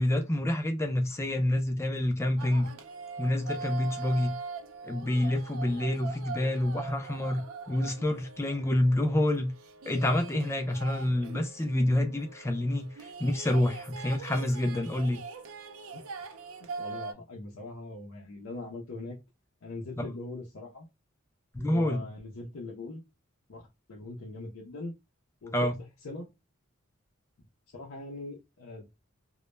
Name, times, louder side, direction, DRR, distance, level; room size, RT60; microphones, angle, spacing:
voice 1, 0.0-2.7 3.2-4.3 4.8-9.5 9.9-15.2 21.5-22.0 25.5-25.8, left 1 dB, 15° left, 0.4 m, -28 dB
sound 1, 2.4-17.1, right 4 dB, 70° right, 0.4 m, -42 dB
voice 2, 16.8-19.2 19.6-20.9 21.7-23.0 23.5-23.6 23.9-24.9 25.4-25.5 26.0-26.3 27.7-28.8, left 2 dB, 70° left, 0.6 m, -41 dB
2.2 x 2.0 x 3.0 m
head